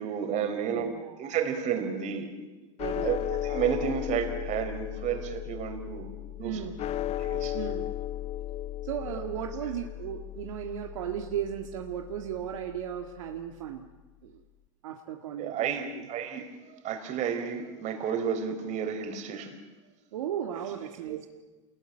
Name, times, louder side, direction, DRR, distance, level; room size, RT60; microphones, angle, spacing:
voice 1, 0.0-0.9 1.2-2.3 3.0-6.1 6.4-6.6 7.2-7.6 15.4-16.5 16.8-19.5 21.0-21.3, right 7 dB, 45° right, 7 dB, 4.4 m, -31 dB
voice 2, 0.7-1.2 2.8-3.1 6.4-6.7 7.5-7.9 8.8-13.9 14.2-14.4 14.8-16.1 20.1-21.2, right 9 dB, 75° right, 3 dB, 1.9 m, -35 dB
sound 1, 2.8-13.2, left 12 dB, 40° left, 1.0 m, -36 dB
28.0 x 20.5 x 8.9 m, 1.2 s
hypercardioid pair, 90°, 17 cm